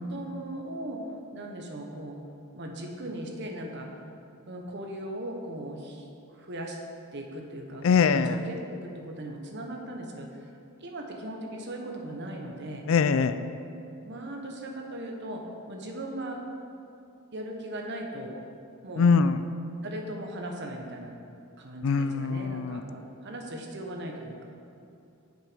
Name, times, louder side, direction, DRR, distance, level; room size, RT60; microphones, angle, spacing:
voice 1, 0.0-1.0 1.3-2.2 2.5-3.9 4.5-6.8 7.1-10.5 10.8-12.9 14.0-16.4 17.3-18.3 18.8-19.1 19.8-21.1 21.6-24.5, right 1 dB, 50° right, 1 dB, 1.0 m, -38 dB
voice 2, 7.8-8.4 12.9-13.4 19.0-19.4 21.8-22.8, left 5 dB, 65° left, 12 dB, 0.4 m, -22 dB
8.0 x 6.5 x 5.1 m, 2.6 s
head